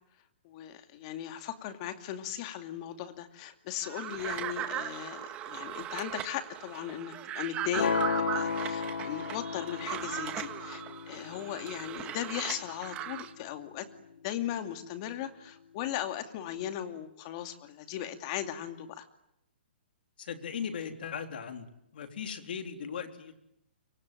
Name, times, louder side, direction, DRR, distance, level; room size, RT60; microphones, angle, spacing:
voice 1, 0.4-13.9 14.2-19.1, left 11 dB, 35° left, 8 dB, 2.5 m, -38 dB
sound 1, 3.8-13.3, right 12 dB, 20° right, 1.8 m, -38 dB
sound 2, 7.7-13.8, left 6 dB, 80° left, 2.8 m, -35 dB
voice 2, 20.2-21.6 21.9-23.4, left 7 dB, 60° left, 7 dB, 3.6 m, -38 dB
26.0 x 24.5 x 9.2 m, 0.80 s
hypercardioid pair, 160°, 6 cm